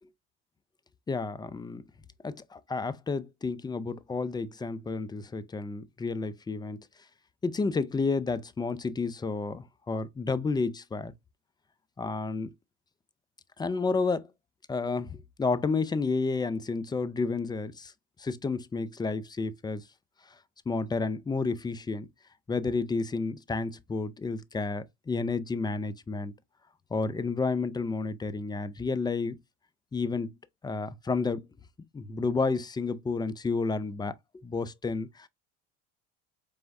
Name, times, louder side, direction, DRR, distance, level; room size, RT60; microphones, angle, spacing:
voice 1, 1.1-1.8 2.2-6.8 7.4-11.1 12.0-12.5 13.6-14.3 14.7-17.9 18.2-19.8 20.7-22.1 22.5-26.3 26.9-29.4 29.9-30.3 30.6-31.4 31.9-34.1 34.4-35.3, left 4 dB, 15° left, 0.4 m, -31 dB
4.4 x 3.4 x 2.5 m
hypercardioid pair, 80°, 34 cm